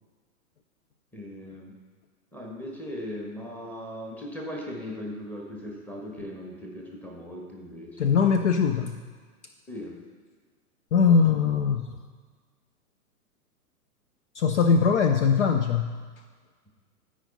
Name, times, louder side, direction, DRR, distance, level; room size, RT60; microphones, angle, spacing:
voice 1, 1.1-1.8 2.3-8.1 9.7-10.0, left 1 dB, 5° left, -2 dB, 1.3 m, -38 dB
voice 2, 8.0-9.0 10.9-11.9 14.3-16.0, left 6 dB, 50° left, 6 dB, 0.6 m, -21 dB
13.0 x 5.0 x 4.1 m, 1.5 s
hypercardioid pair, 120°, 45 cm